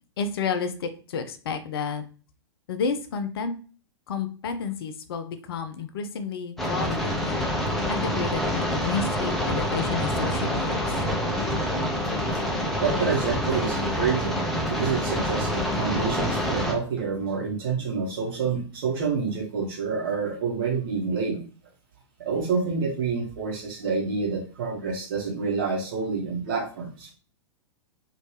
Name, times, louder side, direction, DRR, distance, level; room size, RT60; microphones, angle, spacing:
voice 1, 0.2-2.0 2.7-3.6 4.1-7.5 7.9-10.9, left 5 dB, 55° left, 8 dB, 0.5 m, -31 dB
sound 1, 6.6-16.7, equal, ahead, 0.8 m, -27 dB
voice 2, 12.8-14.4 14.7-21.4 22.2-27.1, right 5 dB, 50° right, -2 dB, 1.3 m, -28 dB
3.1 x 2.9 x 3.1 m, 0.38 s
figure-of-eight pair, 105°, 15 cm